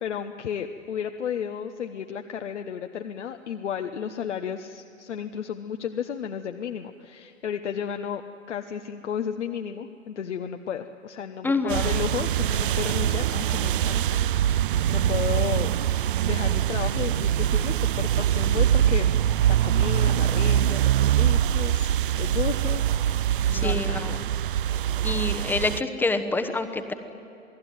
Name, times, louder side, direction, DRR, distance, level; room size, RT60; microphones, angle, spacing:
voice 1, 0.0-8.2 8.5-14.0 14.3-14.5 14.9-15.7 16.2-19.4 19.6-22.9 23.5-24.2, left 8 dB, 60° left, 6 dB, 1.1 m, -33 dB
voice 2, 11.4-12.0 23.5-24.2 25.0-26.9, left 3 dB, 5° left, 8 dB, 1.1 m, -27 dB
sound 1, 11.7-25.8, right 10 dB, 45° right, 0.6 m, -23 dB
28.0 x 19.0 x 9.3 m, 2.9 s
figure-of-eight pair, 120°, 39 cm